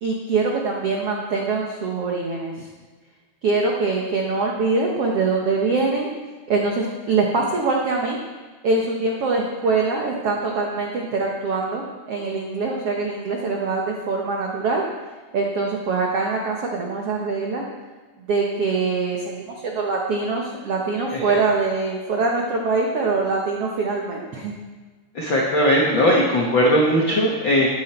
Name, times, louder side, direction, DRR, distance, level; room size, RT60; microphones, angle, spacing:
voice 1, 0.0-2.7 3.4-6.1 6.5-8.2 8.6-14.8 15.3-17.6 18.3-24.5, right 3 dB, 80° right, 0 dB, 1.3 m, -23 dB
voice 2, 25.1-27.7, equal, 75° left, -2 dB, 1.1 m, -18 dB
13.0 x 9.5 x 4.4 m, 1.4 s
omnidirectional pair, 4.4 m